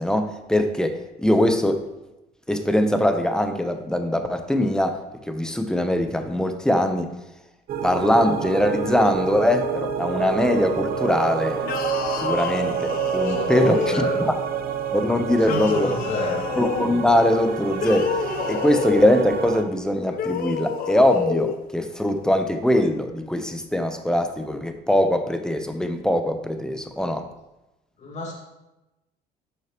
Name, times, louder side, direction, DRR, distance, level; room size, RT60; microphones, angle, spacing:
voice 1, 0.0-1.8 2.5-5.0 5.3-7.1 7.8-11.7 12.2-14.3 14.9-15.9 16.6-27.2, left 1 dB, 5° left, 7 dB, 0.8 m, -22 dB
sound 1, 7.7-19.6, right 7 dB, 60° right, 0.8 m, -28 dB
sound 2, 11.6-14.3 15.4-16.9 17.7-19.2 20.1-21.6, left 6 dB, 60° left, 0.7 m, -29 dB
voice 2, 13.3-14.2 15.5-16.5 28.0-28.3, left 2 dB, 45° left, -2 dB, 2.5 m, -27 dB
11.5 x 6.5 x 3.1 m, 0.99 s
cardioid pair, 110°, 17 cm